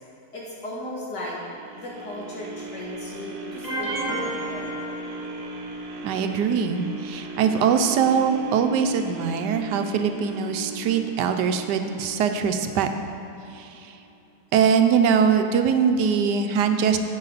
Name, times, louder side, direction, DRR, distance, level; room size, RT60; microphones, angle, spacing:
voice 1, 0.3-1.4 1.7-4.7, left 1 dB, 80° left, -5 dB, 2.7 m, -36 dB
sound 1, 1.5-13.6 14.1-14.2, right 2 dB, 70° right, 1.3 m, -38 dB
sound 2, 3.6-5.7, right 1 dB, 25° right, 1.2 m, -31 dB
voice 2, 6.0-12.9 13.5-13.7 14.5-17.0, right 7 dB, 85° right, 7 dB, 1.3 m, -22 dB
10.5 x 8.1 x 4.0 m, 2.8 s
omnidirectional pair, 1.8 m